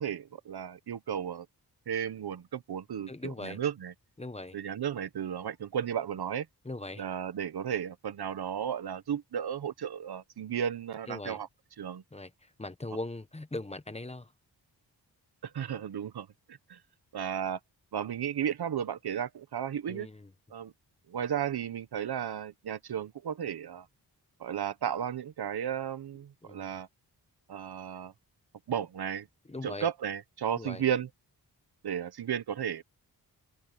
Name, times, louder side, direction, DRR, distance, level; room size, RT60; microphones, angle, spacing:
voice 1, 0.0-1.5 1.9-3.9 4.5-6.5 7.0-11.5 11.8-12.0 15.4-16.8 17.1-17.6 17.9-20.1 20.5-20.7 21.1-23.9 24.4-26.9 27.5-28.1 28.7-29.3 29.6-31.1 31.8-32.8, right 9 dB, 70° right, 1.2 m, -34 dB
voice 2, 3.1-3.6 4.2-4.6 6.6-7.0 11.1-11.4 12.1-14.3 19.9-20.3 26.4-26.8 29.5-29.9 30.5-30.8, left 2 dB, 15° left, 1.2 m, -40 dB
open air
cardioid pair, 75°, 39 cm